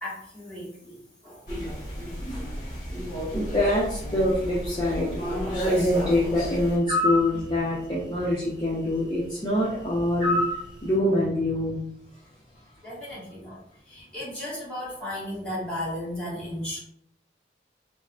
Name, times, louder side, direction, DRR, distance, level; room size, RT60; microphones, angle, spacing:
voice 1, 0.0-1.4 5.6-5.7 12.8-13.6 13.9-16.8, left 1 dB, 5° left, -8 dB, 1.2 m, -35 dB
sound 1, 1.5-6.8, equal, 50° left, 1.3 m, -32 dB
voice 2, 3.3-5.1 5.7-10.4 10.8-11.8, left 1 dB, 25° left, -7 dB, 0.5 m, -25 dB
sound 2, 6.9-7.3 10.2-10.6, left 2 dB, 25° right, 1.0 m, -24 dB
3.5 x 2.1 x 2.4 m, 0.72 s
head